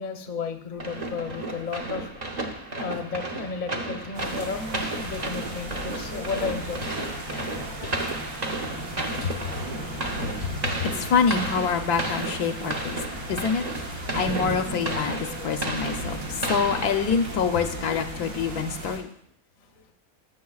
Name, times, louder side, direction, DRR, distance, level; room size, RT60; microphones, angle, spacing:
voice 1, 0.0-2.1 2.8-8.1 18.5-18.7 19.6-19.9, left 5 dB, 40° left, 5 dB, 0.7 m, -34 dB
sound 1, 0.8-17.6, right 2 dB, 35° right, 0.8 m, -33 dB
sound 2, 4.1-19.0, right 2 dB, 60° right, 1.7 m, -36 dB
voice 2, 8.9-13.0 13.3-13.6 14.1-19.1, left 6 dB, 80° left, 7 dB, 1.2 m, -26 dB
15.0 x 6.8 x 2.4 m, 0.67 s
omnidirectional pair, 1.6 m